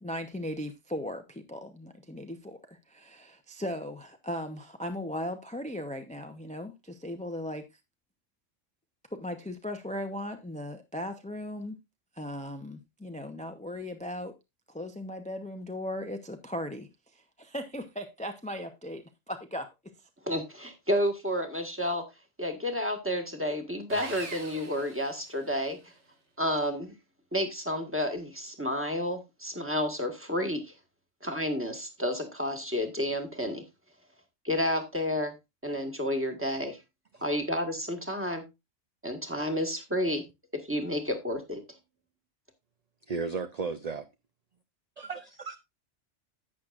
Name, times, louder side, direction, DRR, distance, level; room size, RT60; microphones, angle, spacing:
voice 1, 0.0-2.6 2.9-7.6 9.1-11.8 12.2-14.3 14.7-19.7, left 1 dB, 5° left, 0.7 m, -37 dB
voice 2, 20.2-22.0 22.4-25.8 26.4-26.9 27.3-30.7 31.2-33.6 34.4-35.3 35.6-36.8 37.2-38.4 39.0-40.2 40.7-41.6, equal, 10° right, 1.7 m, -30 dB
Sawing, 23.9-25.8, right 3 dB, 65° right, 1.9 m, -43 dB
voice 3, 43.1-44.1 45.0-45.6, right 5 dB, 45° right, 0.6 m, -34 dB
11.0 x 8.7 x 2.5 m
omnidirectional pair, 1.3 m